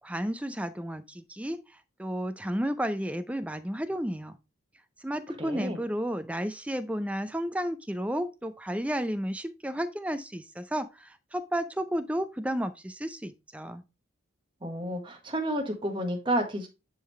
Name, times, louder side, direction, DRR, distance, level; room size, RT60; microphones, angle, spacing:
voice 1, 0.0-1.6 2.0-4.4 5.0-13.8, equal, 5° right, 0.5 m, -32 dB
voice 2, 5.4-5.8 14.6-16.7, right 1 dB, 25° right, 1.4 m, -30 dB
10.5 x 3.7 x 3.2 m
head